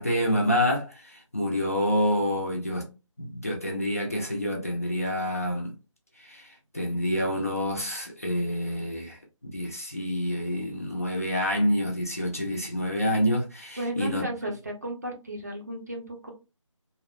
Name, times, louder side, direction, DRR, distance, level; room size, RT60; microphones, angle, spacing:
voice 1, 0.0-2.9 3.2-5.7 6.2-14.2, equal, 25° left, 0.4 m, -28 dB
voice 2, 13.8-16.3, right 1 dB, 30° right, 0.5 m, -34 dB
2.3 x 2.1 x 2.6 m
figure-of-eight pair, 165°, 17 cm